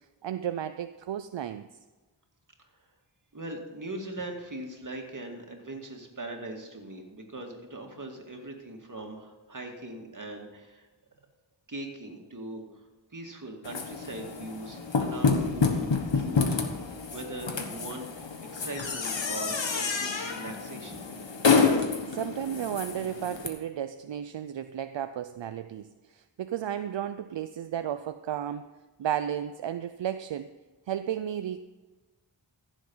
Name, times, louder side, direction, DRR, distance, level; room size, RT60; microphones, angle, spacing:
voice 1, 0.2-1.7 22.1-28.7 29.0-30.5 30.9-31.6, right 10 dB, 75° right, 10 dB, 0.5 m, -33 dB
voice 2, 3.3-10.9 11.7-12.8 13.1-16.6 17.1-21.1, right 2 dB, 40° right, 2 dB, 2.2 m, -40 dB
sound 1, 13.6-23.5, left 5 dB, 75° left, 1.4 m, -28 dB
15.0 x 7.3 x 5.5 m, 1.2 s
wide cardioid pair, 60°, 45 cm